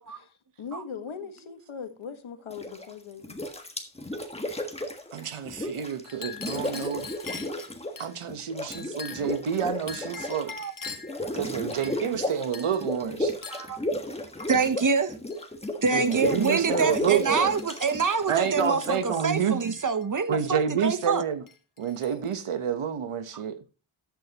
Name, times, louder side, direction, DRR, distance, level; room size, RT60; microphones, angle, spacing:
voice 1, 0.1-3.4 15.8-17.0, left 6 dB, 75° left, 1.6 m, -40 dB
sound 1, 2.5-2.9 3.2-6.0 6.3-8.0 8.3-19.8, left 1 dB, 10° left, 1.5 m, -34 dB
voice 2, 5.1-7.1 8.0-10.5 11.3-13.4 15.9-17.5 18.3-19.7 20.3-21.4 21.8-23.6, right 7 dB, 80° right, 1.2 m, -29 dB
Chink clink, 6.0-8.1 8.7-9.4 9.9-11.2 11.7-12.2 12.5-12.8 13.4-13.7 14.4-14.6 15.3-15.5 15.9-16.6 17.3-17.9 18.2-18.6 19.6-20.3 21.0-21.2 21.5-22.4, left 5 dB, 40° left, 1.4 m, -42 dB
voice 3, 14.5-15.2 15.8-21.2, right 5 dB, 40° right, 0.9 m, -26 dB
13.5 x 8.8 x 3.0 m
wide cardioid pair, 120°, 49 cm